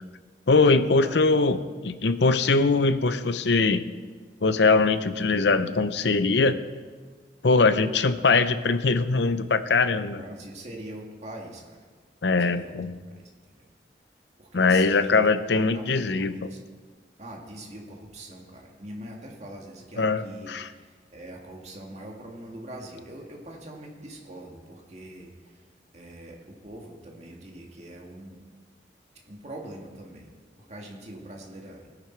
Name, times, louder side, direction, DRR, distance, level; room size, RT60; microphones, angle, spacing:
voice 1, 0.5-3.8 4.4-6.6 7.4-10.2 12.2-12.9 14.5-16.3 20.0-20.7, left 3 dB, 70° left, 12 dB, 0.7 m, -22 dB
voice 2, 1.0-1.5 10.0-11.8 12.4-12.8 13.1-13.6 14.4-15.1 15.5-16.6 17.2-25.7 25.9-28.4 29.3-30.3 30.7-31.8, right 1 dB, 35° right, 0 dB, 2.1 m, -43 dB
17.5 x 10.0 x 4.6 m, 1.5 s
head